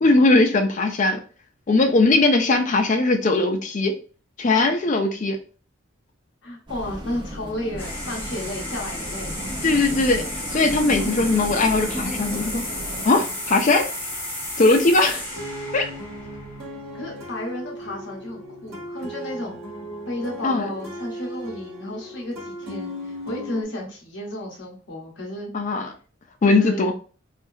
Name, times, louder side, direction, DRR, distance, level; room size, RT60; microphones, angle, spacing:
voice 1, 0.0-1.2 1.7-3.9 4.4-5.4 9.6-10.2 10.5-12.6 13.0-13.9 14.6-15.4 15.7-15.9 20.4-20.6 25.5-25.9 26.4-26.9, left 3 dB, 35° left, 6 dB, 0.4 m, -19 dB
voice 2, 6.4-9.7 16.9-19.6 20.1-25.5 26.5-26.9, left 1 dB, 60° left, 0 dB, 0.9 m, -33 dB
sound 1, 6.7-13.1, equal, 25° right, 0.6 m, -34 dB
sound 2, 7.8-16.9, left 1 dB, 10° left, 1.4 m, -33 dB
sound 3, 10.7-14.7 15.3-23.6, equal, 80° right, 1.1 m, -37 dB
3.4 x 2.7 x 2.7 m, 0.38 s
head